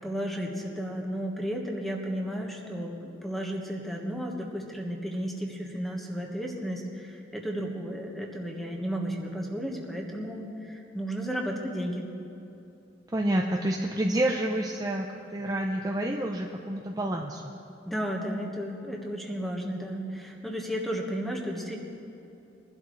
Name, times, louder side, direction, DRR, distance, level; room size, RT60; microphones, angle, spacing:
voice 1, 0.0-12.1 17.8-21.8, equal, ahead, -1 dB, 1.4 m, -33 dB
voice 2, 13.1-15.1 15.3-17.5, right 1 dB, 20° right, 0 dB, 0.6 m, -28 dB
22.5 x 12.0 x 3.2 m, 2.8 s
head